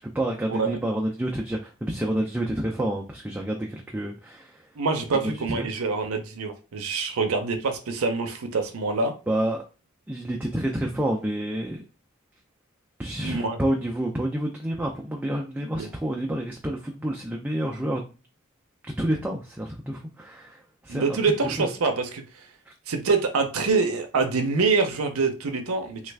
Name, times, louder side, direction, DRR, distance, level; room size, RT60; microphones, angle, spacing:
voice 1, 0.1-4.6 5.5-5.7 9.3-9.6 10.1-11.8 13.0-18.0 19.0-21.2 21.6-21.7, right 1 dB, 5° right, 0.3 m, -29 dB
voice 2, 4.8-9.1 13.2-13.6 15.6-15.9 20.9-22.2 22.9-26.0, right 4 dB, 85° right, 0.5 m, -25 dB
3.2 x 2.4 x 3.3 m
head